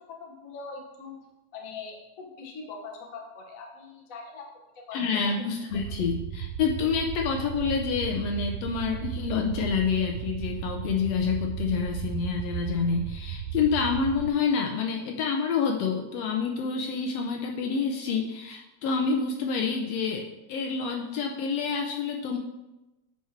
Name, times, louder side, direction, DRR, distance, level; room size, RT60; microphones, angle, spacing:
voice 1, 0.1-1.2 1.5-4.5 4.7-5.0, left 4 dB, 55° left, 0 dB, 0.9 m, -42 dB
voice 2, 4.9-22.4, left 5 dB, 75° left, 2 dB, 1.6 m, -28 dB
sound 1, 5.7-14.3, right 10 dB, 85° right, 1.3 m, -35 dB
9.4 x 4.4 x 4.5 m, 1.0 s
omnidirectional pair, 3.3 m